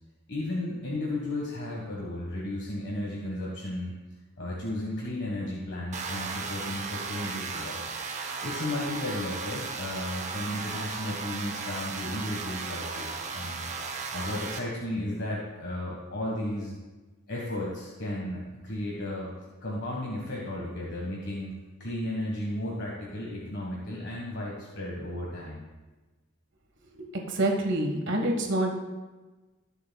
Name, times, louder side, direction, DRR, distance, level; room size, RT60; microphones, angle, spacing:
voice 1, 0.3-3.9 4.4-8.0 8.4-13.7 14.1-16.8 17.3-19.3 19.6-25.6, left 1 dB, 55° left, -3 dB, 1.5 m, -34 dB
sound 1, 5.9-14.6, right 4 dB, 35° right, 0.9 m, -36 dB
voice 2, 27.0-28.7, right 1 dB, 60° right, 2 dB, 1.5 m, -27 dB
19.0 x 7.2 x 2.3 m, 1.2 s
head